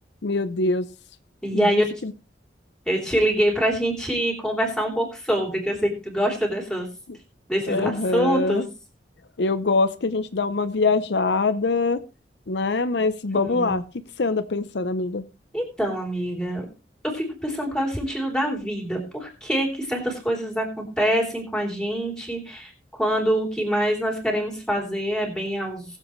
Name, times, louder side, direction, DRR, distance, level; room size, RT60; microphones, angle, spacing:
voice 1, 0.2-0.9 1.5-2.1 7.7-8.7 9.4-12.0 12.5-13.8 14.2-15.2, left 3 dB, 70° left, 12 dB, 0.7 m, -24 dB
voice 2, 1.4-2.0 2.8-6.9 7.5-8.6 13.3-13.8 15.5-16.7 17.0-25.8, equal, 5° left, 1 dB, 3.4 m, -25 dB
20.5 x 7.6 x 3.2 m, 0.33 s
head